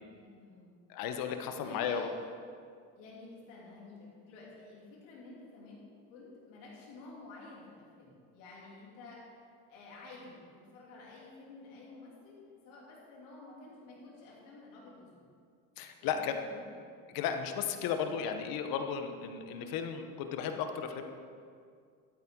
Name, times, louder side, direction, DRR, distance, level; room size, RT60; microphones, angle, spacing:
voice 1, 0.1-0.8 1.6-2.2 2.9-5.8 6.1-9.2 9.7-15.3 15.7-16.8, left 3 dB, 90° left, -4 dB, 3.0 m, -51 dB
voice 2, 0.9-2.1 15.8-16.4 17.1-21.0, left 7 dB, 70° left, 6 dB, 1.1 m, -34 dB
12.5 x 9.2 x 3.8 m, 2.2 s
supercardioid pair, 85°, 36 cm